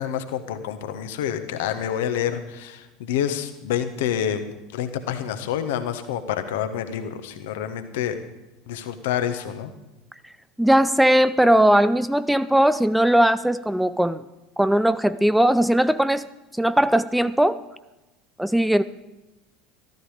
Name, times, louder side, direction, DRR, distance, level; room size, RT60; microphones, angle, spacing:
voice 1, 0.0-4.4 4.7-8.2 8.7-9.7, left 9 dB, 60° left, 9 dB, 1.3 m, -28 dB
voice 2, 10.6-14.2 14.6-16.3 16.6-17.6 18.4-18.8, right 1 dB, 5° right, 14 dB, 0.5 m, -19 dB
14.5 x 13.5 x 5.0 m, 1.0 s
figure-of-eight pair, 75°, 0 cm